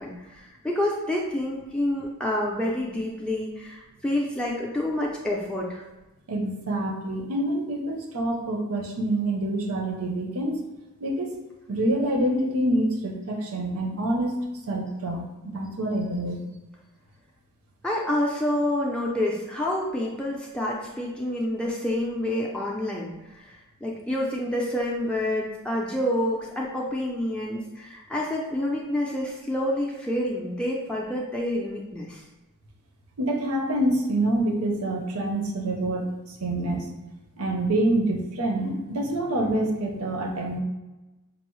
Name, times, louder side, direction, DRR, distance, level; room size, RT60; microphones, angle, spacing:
voice 1, 0.0-5.8 17.8-32.2, left 1 dB, 5° left, -4 dB, 0.4 m, -28 dB
voice 2, 6.3-10.6 11.0-11.4 11.7-14.4 14.7-16.4 33.2-36.9 37.4-40.6, right 1 dB, 80° right, 2 dB, 0.7 m, -26 dB
5.2 x 2.0 x 3.0 m, 1.1 s
head